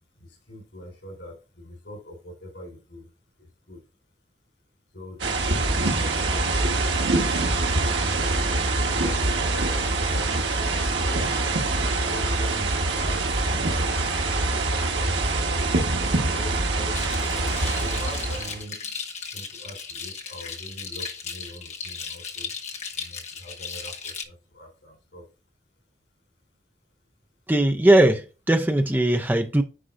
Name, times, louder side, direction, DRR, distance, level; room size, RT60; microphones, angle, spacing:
voice 1, 0.0-3.1 3.4-3.8 4.9-6.9 7.8-8.9 9.5-10.7 11.7-14.1 14.5-15.5 16.3-19.0 19.3-22.5 22.9-25.3, equal, 90° left, 4.2 m, -43 dB
sound 1, 5.2-18.6, right 2 dB, 90° right, 1.4 m, -24 dB
sound 2, 16.9-24.2, left 5 dB, 40° left, 1.0 m, -36 dB
voice 2, 27.5-28.2 28.5-29.6, right 1 dB, 10° right, 0.5 m, -19 dB
9.9 x 4.6 x 2.6 m
head